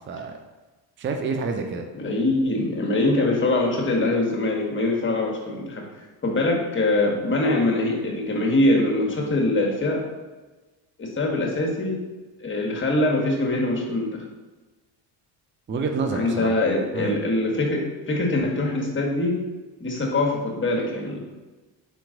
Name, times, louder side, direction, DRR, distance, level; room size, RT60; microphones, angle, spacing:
voice 1, 0.1-0.4 1.0-1.9 15.7-16.5 16.9-17.1, right 4 dB, 25° right, 4 dB, 0.5 m, -28 dB
voice 2, 1.9-5.8 6.2-10.0 11.0-12.0 12.4-14.1 16.1-19.4 19.8-21.2, left 2 dB, 25° left, -1 dB, 1.4 m, -23 dB
4.4 x 3.0 x 3.8 m, 1.2 s
hypercardioid pair, 60°, 47 cm